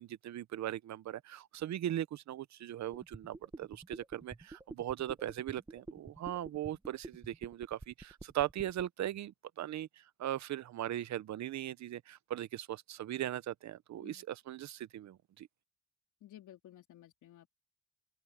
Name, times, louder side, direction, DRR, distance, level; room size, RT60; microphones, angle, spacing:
voice 1, 0.0-9.9 10.2-15.5, right 12 dB, 65° right, 0.9 m, -39 dB
sound 1, 2.9-8.8, right 3 dB, 15° right, 1.6 m, -48 dB
voice 2, 16.2-17.5, left 12 dB, 80° left, 3.9 m, -55 dB
open air
cardioid pair, 90°, 30 cm